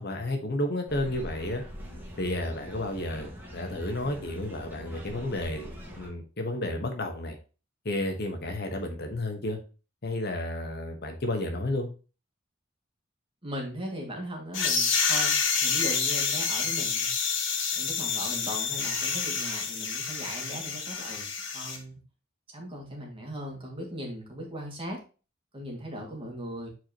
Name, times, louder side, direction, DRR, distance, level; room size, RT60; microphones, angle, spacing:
voice 1, 0.0-1.6 2.2-7.4 7.8-9.6 10.0-11.9, left 1 dB, 55° left, 4 dB, 1.2 m, -32 dB
sound 1, 0.9-6.1, equal, 10° right, 1.7 m, -43 dB
voice 2, 13.4-17.1 17.7-21.9 22.5-25.0 25.5-26.7, equal, 30° right, -1 dB, 2.1 m, -38 dB
sound 2, 14.5-21.8, left 5 dB, 70° left, 1.3 m, -28 dB
7.7 x 4.5 x 2.9 m, 0.34 s
head